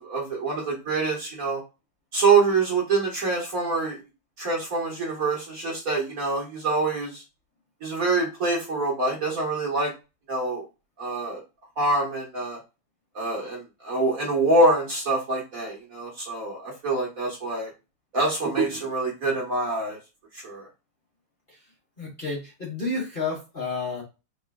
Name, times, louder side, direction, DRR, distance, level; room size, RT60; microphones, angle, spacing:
voice 1, 0.0-1.6 2.1-4.0 4.4-7.2 7.8-9.9 10.3-10.6 11.0-11.4 11.8-12.6 13.1-17.7 18.1-20.0 20.4-20.7, right 3 dB, 45° right, -2 dB, 1.6 m, -25 dB
voice 2, 22.0-24.0, left 3 dB, 25° left, -4 dB, 1.6 m, -30 dB
4.7 x 3.8 x 2.3 m, 0.27 s
omnidirectional pair, 2.3 m